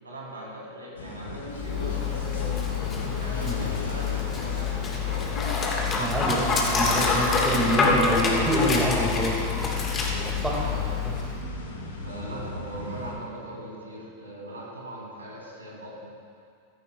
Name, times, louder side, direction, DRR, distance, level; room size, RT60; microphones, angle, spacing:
voice 1, 0.0-5.3 9.9-10.8 12.0-16.1, right 1 dB, 75° right, -3 dB, 2.7 m, -40 dB
sound 1, 1.0-13.1, left 2 dB, 65° left, 1.6 m, -37 dB
Dog, 1.5-11.4, left 4 dB, 25° left, 1.6 m, -26 dB
sound 2, 3.1-5.7, left 2 dB, 90° left, 1.5 m, -41 dB
voice 2, 6.0-6.5 6.7-9.3 10.4-10.6, equal, 10° right, -3 dB, 2.0 m, -26 dB
15.0 x 13.5 x 2.3 m, 2.3 s
figure-of-eight pair, 90°, 0 cm